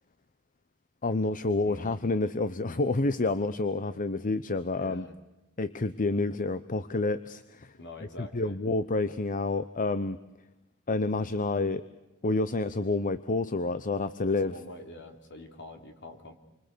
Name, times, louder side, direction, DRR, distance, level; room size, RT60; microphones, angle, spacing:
voice 1, 1.0-5.1 5.6-7.7 8.2-10.2 10.9-11.8 12.2-14.5, left 3 dB, 40° left, 13 dB, 0.8 m, -29 dB
voice 2, 1.6-2.0 4.7-5.1 7.7-8.6 14.3-16.3, left 1 dB, 55° left, 5 dB, 3.8 m, -45 dB
28.5 x 24.5 x 6.8 m, 1.0 s
head